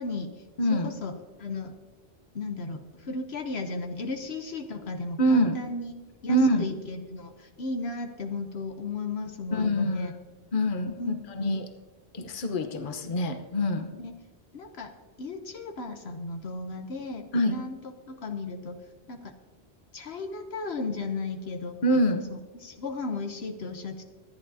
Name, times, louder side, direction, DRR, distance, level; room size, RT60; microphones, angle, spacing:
voice 1, 0.0-0.4 0.7-1.8 2.3-5.9 6.2-10.1 11.0-11.6 13.9-14.1 14.5-14.9 15.2-17.8 18.1-18.8 19.1-19.3 19.9-21.8 22.3-24.0, left 3 dB, 75° left, 6 dB, 1.2 m, -35 dB
voice 2, 0.6-0.9 5.2-5.6 6.3-6.6 9.5-10.0 10.5-11.7 12.1-13.9 17.3-17.6 21.8-22.2, equal, 50° left, 6 dB, 1.1 m, -25 dB
25.0 x 11.0 x 2.7 m, 1.3 s
omnidirectional pair, 1.1 m